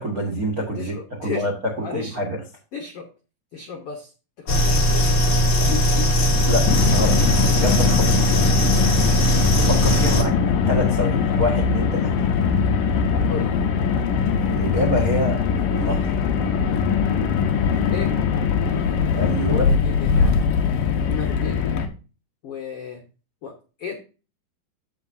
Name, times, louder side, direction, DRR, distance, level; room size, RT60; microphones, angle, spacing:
voice 1, 0.0-0.9 1.2-2.4 6.4-7.2 7.5-8.3 9.6-10.4 10.7-12.1 14.4-15.4 15.7-16.2 19.2-19.7, left 1 dB, 75° right, 2 dB, 0.8 m, -26 dB
voice 2, 0.5-1.4 1.8-2.2 2.7-3.1 3.5-4.1 4.4-5.3 5.7-6.1 6.4-6.5 13.3-13.6 17.9-18.1 19.4-20.5 21.0-21.8 22.4-23.1 23.4-23.5 23.8-24.0, left 6 dB, 85° left, 3 dB, 1.3 m, -35 dB
sound 1, 4.5-10.2, equal, 50° left, 1.0 m, -19 dB
Car, 6.7-21.9, left 6 dB, 65° left, 2.4 m, -21 dB
15.0 x 5.1 x 2.7 m, 0.33 s
omnidirectional pair, 4.7 m